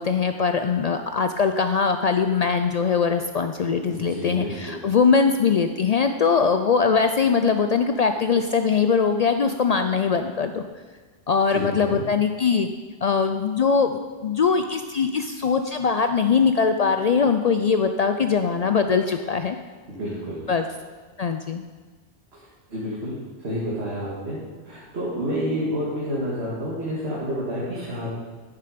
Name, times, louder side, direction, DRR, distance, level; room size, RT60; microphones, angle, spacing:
voice 1, 0.0-10.6 11.3-12.7 13.0-13.9 14.2-19.6 20.5-20.7 21.2-21.6, left 5 dB, 85° left, 7 dB, 0.3 m, -21 dB
voice 2, 3.9-4.8 11.5-12.0 19.9-20.5 22.3-22.4 22.7-24.4 24.6-28.1, equal, 60° right, -7 dB, 2.1 m, -29 dB
11.5 x 7.0 x 5.1 m, 1.4 s
omnidirectional pair, 1.2 m